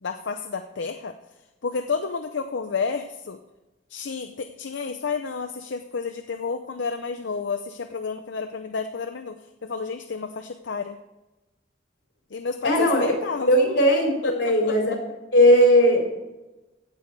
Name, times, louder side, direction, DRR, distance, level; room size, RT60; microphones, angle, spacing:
voice 1, 0.0-1.1 1.6-3.4 3.9-11.0 12.3-13.8 14.2-14.7, left 5 dB, 80° left, 7 dB, 0.6 m, -30 dB
voice 2, 12.6-13.1 13.5-15.0 15.3-16.1, equal, 65° left, 1 dB, 3.4 m, -18 dB
15.5 x 8.2 x 4.5 m, 1.1 s
head